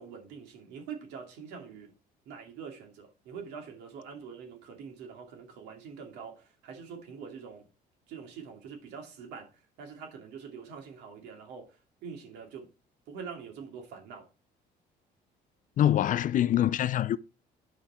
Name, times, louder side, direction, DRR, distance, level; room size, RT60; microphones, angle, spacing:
voice 1, 0.0-1.9 2.3-7.7 8.1-9.5 9.8-12.7 13.1-14.3, right 6 dB, 85° right, 2.6 m, -44 dB
voice 2, 15.8-17.2, left 11 dB, 50° left, 0.5 m, -24 dB
10.5 x 5.1 x 4.4 m
cardioid pair, 110°, 17 cm